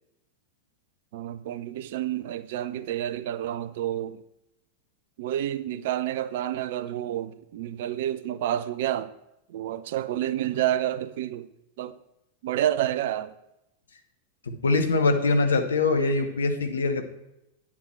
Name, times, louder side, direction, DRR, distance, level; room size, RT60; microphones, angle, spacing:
voice 1, 1.1-4.2 5.2-9.1 9.5-11.5 11.8-12.0 12.4-13.3, right 12 dB, 55° right, 0.5 m, -29 dB
voice 2, 14.5-17.0, left 3 dB, 70° left, 1.0 m, -23 dB
9.4 x 7.5 x 4.6 m
figure-of-eight pair, 90°, 0 cm